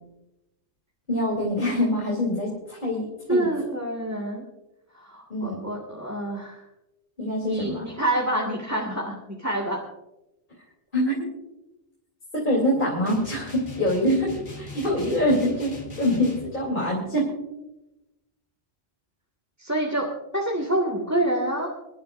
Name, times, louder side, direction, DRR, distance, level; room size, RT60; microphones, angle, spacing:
voice 1, 1.1-3.5 5.3-5.6 7.2-7.9 10.9-11.2 12.3-17.3, left 1 dB, 40° left, -5 dB, 3.6 m, -25 dB
voice 2, 3.3-4.5 4.9-6.6 7.4-9.8 19.6-20.1 20.3-21.7, right 1 dB, 15° right, -4 dB, 1.8 m, -27 dB
sound 1, 13.1-16.5, left 2 dB, 85° left, 2.4 m, -40 dB
26.5 x 12.0 x 2.6 m, 0.98 s
omnidirectional pair, 1.2 m